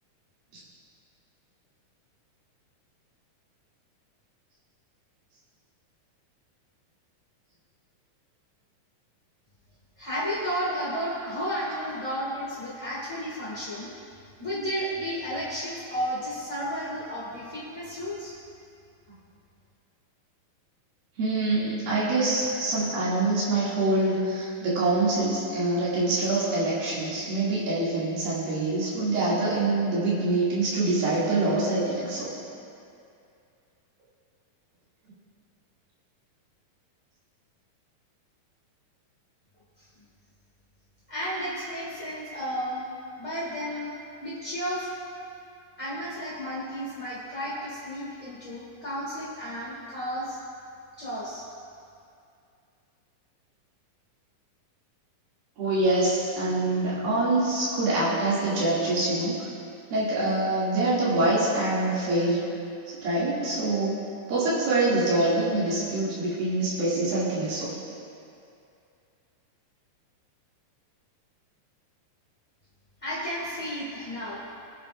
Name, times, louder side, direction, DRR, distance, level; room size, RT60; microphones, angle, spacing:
voice 1, 10.0-13.9 14.4-18.3 41.1-42.9 43.2-44.9 45.8-50.4 51.0-51.5 73.0-74.4, equal, 20° left, -9 dB, 0.9 m, -32 dB
voice 2, 21.2-32.3 55.6-59.4 59.9-62.4 62.9-64.0 64.3-67.8, right 2 dB, 90° right, -9 dB, 4.2 m, -25 dB
21.5 x 8.9 x 2.5 m, 2.5 s
omnidirectional pair, 4.0 m